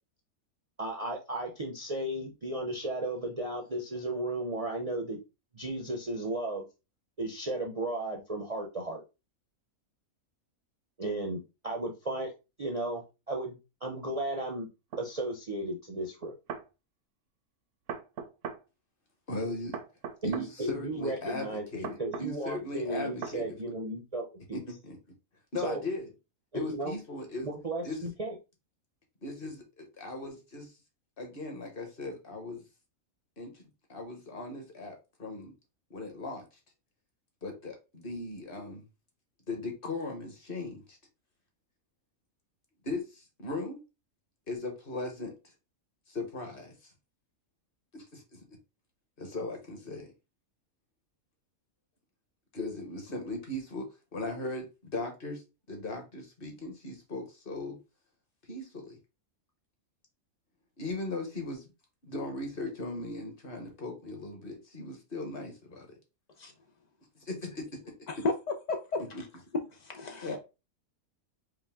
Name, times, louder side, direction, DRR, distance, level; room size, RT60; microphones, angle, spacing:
voice 1, 0.8-5.2 5.5-6.6 7.2-9.0 11.0-12.3 12.6-14.7 15.0-16.3 20.2-24.6 25.6-25.8 26.5-26.9 27.4-28.3, right 1 dB, 40° right, 0.5 m, -35 dB
sound 1, 14.9-15.1 16.2-16.7 17.9-18.6 19.7-20.5 21.8-22.3 23.2-23.4, right 6 dB, 65° right, 0.9 m, -38 dB
voice 2, 19.3-19.8 20.2-23.7 24.5-25.0 25.5-26.1 26.5-27.5 27.8-28.1 29.2-30.7 31.2-32.6 33.4-33.6 33.9-35.5 35.9-36.4 37.4-38.8 39.5-41.0 42.8-43.8 44.5-45.3 46.1-46.7 47.9-48.4 49.2-50.1 52.5-55.4 55.7-57.8 58.5-59.0 60.8-61.7 62.0-65.9 67.2-67.7 69.1-69.2 70.2-70.4, left 2 dB, 45° left, 1.2 m, -38 dB
voice 3, 68.1-69.3 69.7-70.4, left 3 dB, 85° left, 0.3 m, -34 dB
5.0 x 2.1 x 3.5 m
omnidirectional pair, 1.5 m